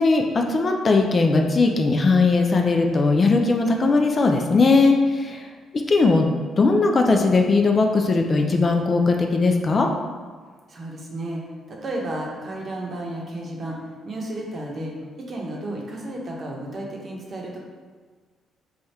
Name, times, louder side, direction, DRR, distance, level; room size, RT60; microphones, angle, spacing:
voice 1, 0.0-5.5 5.9-6.3 6.6-9.9, left 3 dB, 40° left, 3 dB, 0.4 m, -19 dB
voice 2, 10.7-17.6, right 1 dB, 45° right, -2 dB, 0.8 m, -33 dB
3.4 x 2.3 x 4.1 m, 1.5 s
cardioid pair, 90°, 0 cm